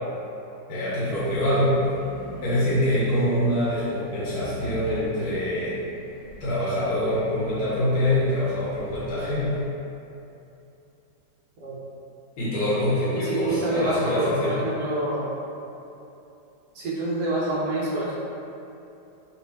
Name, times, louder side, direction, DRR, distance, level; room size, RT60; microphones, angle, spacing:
voice 1, 0.7-1.7 2.4-5.7 6.4-9.5 12.4-14.5, left 1 dB, 60° left, -11 dB, 1.5 m, -24 dB
sound 1, 1.1-9.6, right 1 dB, 80° left, 2.1 m, -42 dB
voice 2, 13.1-15.3 16.7-18.1, right 1 dB, 70° right, -6 dB, 1.4 m, -27 dB
4.3 x 2.1 x 3.4 m, 2.8 s
omnidirectional pair, 1.9 m